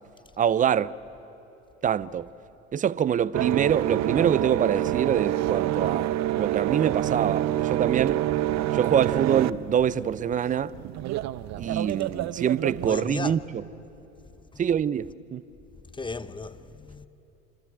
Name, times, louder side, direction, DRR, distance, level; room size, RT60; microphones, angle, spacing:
voice 1, 0.4-1.0 1.8-2.3 2.7-8.2 8.7-10.7 11.6-13.6 14.6-15.4, right 9 dB, 20° right, 0.5 m, -25 dB
sound 1, 3.3-12.9, right 14 dB, 40° right, 0.8 m, -27 dB
voice 2, 12.9-13.4 14.5-14.6 15.9-17.1, left 3 dB, 10° left, 0.9 m, -35 dB
27.0 x 26.0 x 7.6 m
hypercardioid pair, 80°, 40 cm